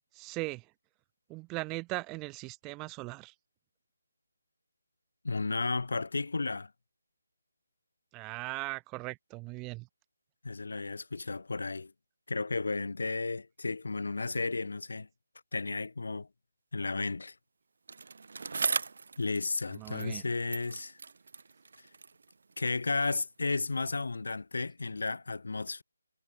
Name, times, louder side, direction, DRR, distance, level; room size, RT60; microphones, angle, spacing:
voice 1, 0.1-0.7 1.3-3.3 8.1-9.9 19.7-20.2, right 24 dB, 15° right, 0.6 m, -39 dB
voice 2, 5.2-6.7 10.4-11.9 12.3-15.1 15.5-16.3 16.7-17.3 19.2-21.0 22.6-25.8, left 3 dB, 75° left, 3.7 m, -33 dB
Bicycle, 17.9-20.3 20.5-22.9 23.7-23.8, right 4 dB, 60° right, 3.3 m, -38 dB
figure-of-eight pair, 160°, 0 cm